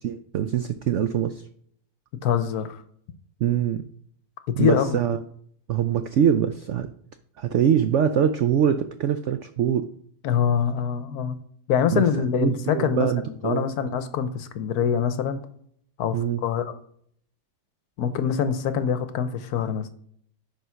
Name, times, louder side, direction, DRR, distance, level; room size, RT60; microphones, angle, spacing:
voice 1, 0.0-1.4 3.4-3.8 4.6-5.2 5.7-6.9 7.4-9.9 11.9-12.1 12.4-13.6 16.1-16.4, right 9 dB, 80° right, 10 dB, 0.6 m, -23 dB
voice 2, 2.2-2.8 4.6-5.0 10.2-11.4 11.7-15.4 16.0-16.7 18.0-19.9, left 7 dB, 70° left, 11 dB, 1.2 m, -24 dB
9.3 x 3.8 x 5.7 m, 0.65 s
omnidirectional pair, 1.8 m